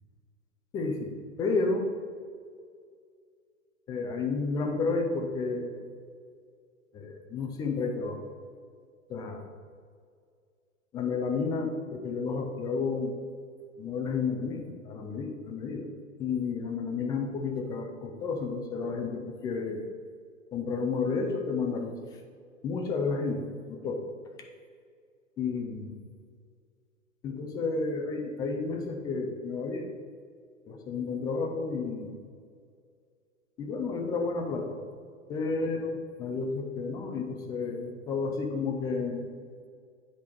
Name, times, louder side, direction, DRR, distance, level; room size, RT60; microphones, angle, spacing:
voice 1, 0.7-1.9 3.9-5.8 6.9-8.2 9.1-9.4 10.9-13.1 13.8-15.9 16.2-19.8 20.5-22.0 22.6-24.0 25.4-25.9 27.2-29.9 30.7-32.1 33.6-34.7 35.3-39.3, left 4 dB, 10° left, 3 dB, 0.3 m, -31 dB
9.8 x 3.4 x 4.5 m, 2.1 s
figure-of-eight pair, 110°, 39 cm